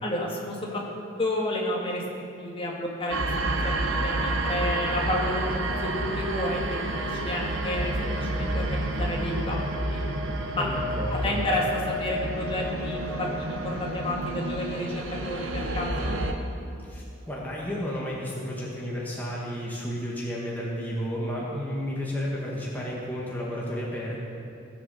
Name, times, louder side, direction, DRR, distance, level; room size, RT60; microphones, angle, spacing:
voice 1, 0.0-9.6 9.9-10.1 10.5-10.7 11.1-16.2, left 1 dB, 25° left, -2 dB, 1.9 m, -31 dB
sound 1, 3.1-16.3, right 1 dB, 75° right, 1.2 m, -29 dB
voice 2, 10.6-11.3 16.8-24.1, equal, 10° left, -5 dB, 1.8 m, -32 dB
17.0 x 7.1 x 7.1 m, 2.7 s
head